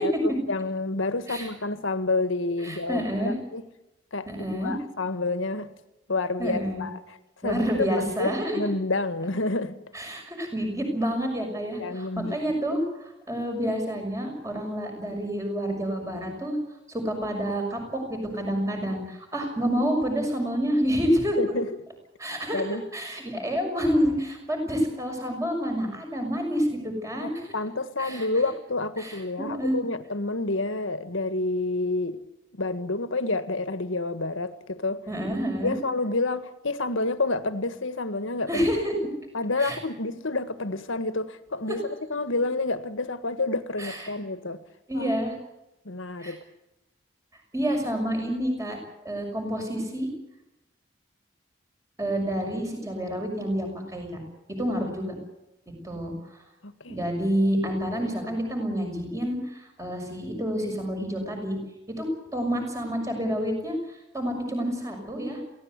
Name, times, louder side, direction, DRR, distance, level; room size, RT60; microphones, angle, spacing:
voice 1, 0.0-3.7 4.1-4.3 4.6-5.7 6.1-7.2 7.4-9.8 11.8-12.4 21.4-21.7 22.5-22.8 27.2-32.2 32.5-35.0 35.6-38.7 39.3-44.6 44.9-45.1 45.9-46.4 56.6-57.0, left 2 dB, 85° left, 1.7 m, -29 dB
voice 2, 2.6-3.3 4.3-4.7 6.4-6.8 7.4-8.7 9.9-16.6 16.9-21.4 22.2-22.6 22.9-27.4 28.0-28.3 29.0-29.8 35.1-35.7 38.5-38.9 39.6-39.8 43.8-44.1 44.9-45.3 46.2-46.4 47.5-48.8 49.0-50.1 52.0-54.1 54.6-55.1 55.7-56.1 56.9-61.6 62.0-62.1 62.3-63.8 64.1-65.4, equal, 15° right, 6.3 m, -28 dB
23.0 x 17.0 x 8.3 m
head